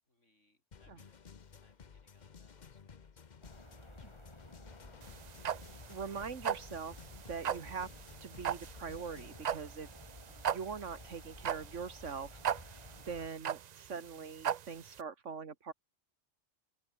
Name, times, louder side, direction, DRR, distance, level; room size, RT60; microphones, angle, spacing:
voice 1, 0.0-5.2, left 1 dB, 70° left, 7.8 m, -73 dB
sound 1, 0.7-9.4, left 6 dB, 40° left, 0.9 m, -55 dB
sound 2, 3.4-13.3, left 1 dB, 20° left, 4.6 m, -54 dB
sound 3, 5.0-15.0, right 9 dB, 55° right, 0.5 m, -37 dB
voice 2, 5.9-7.0 7.3-7.9 8.2-9.9 10.5-12.4 13.1-15.7, right 5 dB, 75° right, 2.0 m, -42 dB
open air
omnidirectional pair, 1.3 m